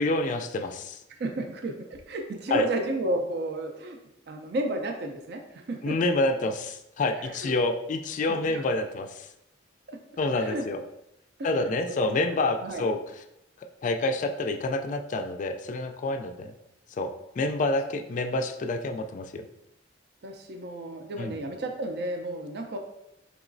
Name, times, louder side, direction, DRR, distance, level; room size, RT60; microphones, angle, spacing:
voice 1, 0.0-1.0 2.5-2.7 5.8-9.3 10.2-10.8 11.4-13.0 13.8-16.5 17.0-17.1 17.4-19.5 21.2-21.4, left 2 dB, 45° left, 7 dB, 0.3 m, -28 dB
voice 2, 1.1-4.0 4.3-6.0 7.2-7.6 8.3-8.6 9.9-10.0 10.4-10.7 11.4-12.0 12.3-12.8 20.2-22.8, right 1 dB, 60° right, 4 dB, 0.4 m, -32 dB
4.6 x 3.0 x 2.6 m, 0.85 s
head